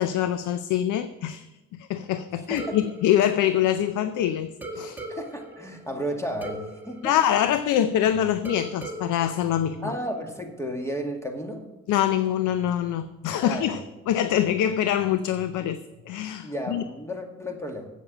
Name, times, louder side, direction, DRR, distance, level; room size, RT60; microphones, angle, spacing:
voice 1, 0.0-1.5 1.7-5.0 7.0-9.9 11.9-15.8 16.1-16.8, left 10 dB, 80° left, 11 dB, 0.6 m, -24 dB
sound 1, 2.6-4.2 4.6-8.0 8.5-10.4, right 1 dB, 5° right, 1.9 m, -40 dB
voice 2, 5.1-7.1 9.8-11.6 13.4-13.8 16.4-17.9, equal, 10° left, 3 dB, 2.0 m, -33 dB
8.2 x 7.1 x 8.6 m, 1.0 s
cardioid pair, 90°, 30 cm